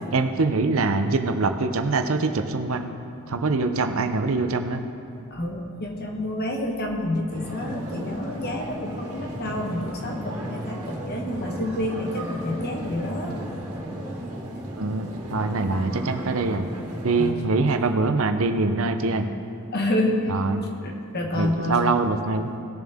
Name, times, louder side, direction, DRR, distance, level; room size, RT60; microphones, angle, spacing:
voice 1, 0.1-2.9 3.3-4.8 14.7-16.7 17.0-19.3 20.3-20.6 21.3-22.5, right 3 dB, 65° right, 7 dB, 0.7 m, -24 dB
voice 2, 5.3-13.4 17.2-17.3 19.7-20.3 20.8-22.0, left 1 dB, 45° left, 1 dB, 1.3 m, -28 dB
sound 1, 7.3-17.3, right 1 dB, 90° right, 1.8 m, -35 dB
19.0 x 7.1 x 3.6 m, 2.5 s
head